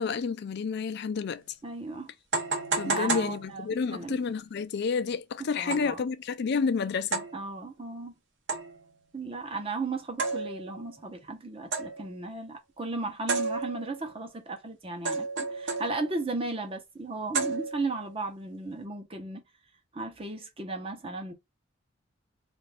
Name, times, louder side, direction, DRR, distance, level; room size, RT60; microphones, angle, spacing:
voice 1, 0.0-1.4 2.8-7.2, left 5 dB, 55° left, 0.4 m, -30 dB
sound 1, 1.3-1.4 2.3-4.0 5.7-6.0 7.1-7.4 8.5-8.9 10.2-10.8 11.7-12.1 13.3-14.0 15.0-16.2 17.3-18.0, right 4 dB, 65° right, 0.8 m, -32 dB
voice 2, 1.6-2.1 2.8-4.2 5.6-6.0 7.3-8.1 9.1-19.4 19.9-21.3, right 3 dB, 30° right, 0.8 m, -35 dB
2.7 x 2.5 x 3.3 m
head